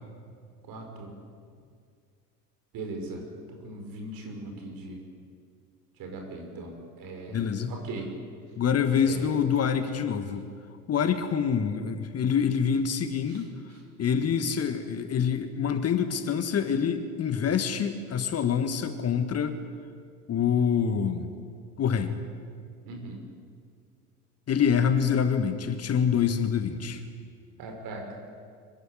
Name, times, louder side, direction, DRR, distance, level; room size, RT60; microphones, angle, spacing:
voice 1, 0.7-1.1 2.7-3.2 3.5-5.0 6.0-7.4 7.7-8.1 9.0-9.3 13.3-13.4 14.2-14.3 22.9-23.2 27.6-28.0, right 2 dB, 45° right, 3 dB, 5.8 m, -39 dB
voice 2, 7.3-7.7 8.6-10.5 10.9-13.5 14.0-19.6 20.3-21.3 21.8-22.2 24.5-27.0, left 7 dB, 30° left, 9 dB, 1.6 m, -26 dB
24.5 x 15.5 x 9.8 m, 2.2 s
figure-of-eight pair, 70°, 46 cm